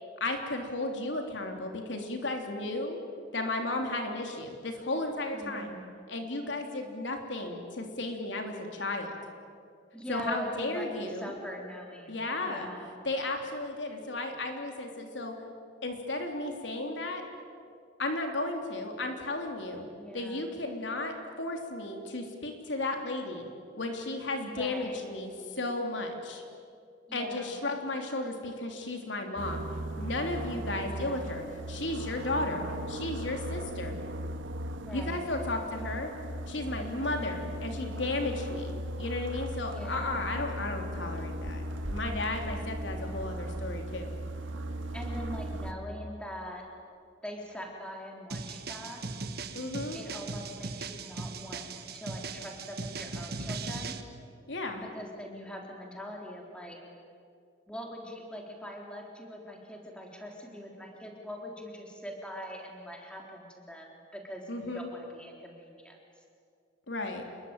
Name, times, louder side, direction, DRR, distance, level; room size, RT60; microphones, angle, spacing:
voice 1, 0.2-3.0 3.3-5.7 6.1-9.2 10.1-11.3 12.1-12.7 13.0-15.3 15.8-17.2 18.0-19.9 20.1-23.5 23.8-26.4 27.1-29.7 30.0-34.0 34.9-36.1 36.5-41.6 41.9-44.1 49.5-50.0 54.5-54.8 64.5-64.9 66.9-67.3, left 2 dB, 75° left, 3 dB, 3.5 m, -34 dB
voice 2, 5.3-6.0 9.9-13.0 20.0-20.4 24.5-25.0 27.1-27.5 30.8-31.4 34.8-35.2 39.6-40.2 44.9-46.7 47.2-49.0 49.9-54.0 54.8-56.8 57.7-66.0, equal, 5° left, 0 dB, 3.8 m, -43 dB
sound 1, 29.4-45.7, right 1 dB, 85° right, 1.7 m, -37 dB
sound 2, 48.3-54.0, right 3 dB, 55° right, 1.5 m, -38 dB
28.5 x 22.5 x 9.0 m, 2.3 s
head